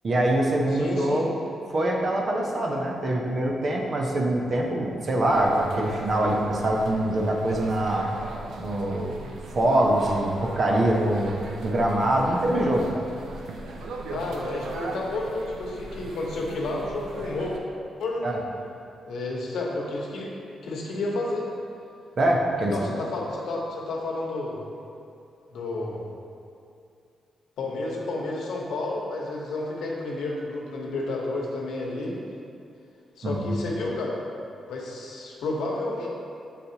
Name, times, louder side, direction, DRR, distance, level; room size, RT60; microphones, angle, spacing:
voice 1, 0.0-1.3 1.7-8.1 8.6-9.2 9.5-11.3 11.6-13.1 18.2-18.3 22.2-22.7 33.2-33.5, right 1 dB, 40° right, 0 dB, 0.6 m, -24 dB
voice 2, 0.7-1.3 14.1-17.5 18.0-18.4 19.1-20.3 20.6-21.6 22.7-24.6 25.5-26.0 27.6-32.2 33.2-34.2 34.7-36.1, left 2 dB, 85° left, -3 dB, 1.0 m, -31 dB
sound 1, 5.3-17.6, right 2 dB, 80° right, 0.5 m, -38 dB
8.0 x 4.1 x 2.8 m, 2.5 s
wide cardioid pair, 150°, 0 cm